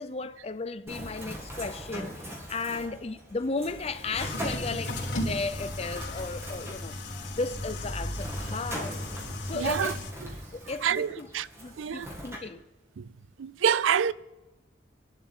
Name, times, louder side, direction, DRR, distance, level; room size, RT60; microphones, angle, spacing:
voice 1, 0.0-5.0 5.2-9.0 9.4-10.0 10.5-11.3 11.6-12.6, left 3 dB, 30° left, 0.6 m, -35 dB
Bird, 0.9-12.4, equal, 15° right, 2.4 m, -41 dB
sound 1, 4.1-10.1, left 1 dB, 70° left, 3.1 m, -35 dB
voice 2, 9.5-9.9 10.8-11.5 11.8-12.1 13.0-13.1 13.4-14.1, right 8 dB, 85° right, 0.4 m, -27 dB
25.5 x 11.5 x 3.7 m
head